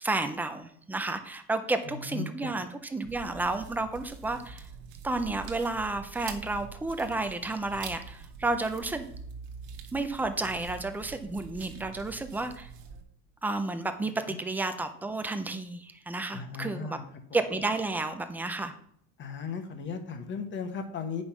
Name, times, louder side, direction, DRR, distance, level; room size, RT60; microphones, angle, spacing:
voice 1, 0.0-4.7 5.0-9.1 9.9-12.7 13.4-17.0 17.3-18.7, right 2 dB, 5° right, 8 dB, 0.3 m, -31 dB
voice 2, 1.8-2.5 14.3-14.4 16.3-17.0 19.2-21.2, left 5 dB, 30° left, 7 dB, 1.2 m, -36 dB
sound 1, 3.0-13.0, right 6 dB, 50° right, 1.4 m, -45 dB
8.6 x 5.4 x 5.9 m, 0.67 s
supercardioid pair, 145°, 41 cm